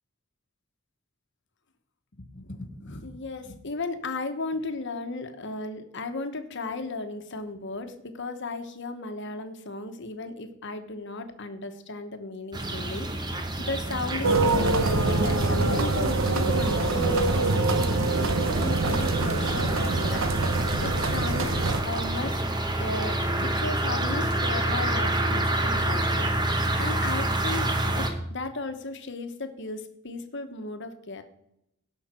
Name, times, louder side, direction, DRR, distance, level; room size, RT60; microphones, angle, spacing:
voice 1, 2.2-21.5 21.7-22.4 22.8-27.6 27.9-31.2, left 3 dB, 60° left, 8 dB, 1.2 m, -36 dB
sound 1, 12.5-28.1, right 1 dB, 20° right, 1.1 m, -28 dB
sound 2, 14.2-21.8, right 3 dB, 75° right, 0.9 m, -25 dB
17.0 x 5.8 x 4.4 m, 0.79 s
head